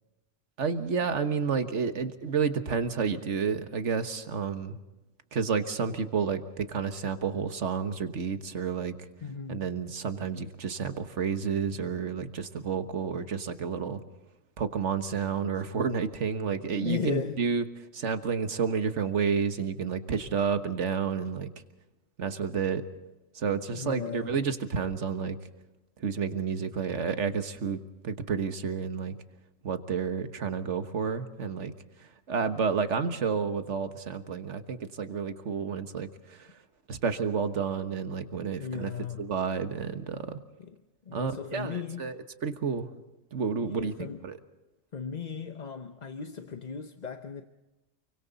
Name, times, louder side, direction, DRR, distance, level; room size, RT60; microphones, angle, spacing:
voice 1, 0.6-4.8 5.3-8.9 9.5-14.0 14.6-17.6 17.9-21.5 22.2-22.8 23.3-25.4 26.0-29.1 29.6-31.7 32.0-36.6 36.9-38.9 39.2-40.4 41.1-42.2 42.4-42.9 43.3-43.9 44.2-44.4, right 6 dB, 90° right, 1.6 m, -30 dB
voice 2, 9.2-9.7 16.8-17.4 23.7-24.4 38.6-39.3 40.6-40.8 41.1-42.1 43.6-44.2 44.9-47.5, left 6 dB, 40° left, 0.9 m, -36 dB
29.0 x 23.5 x 4.1 m
omnidirectional pair, 1.2 m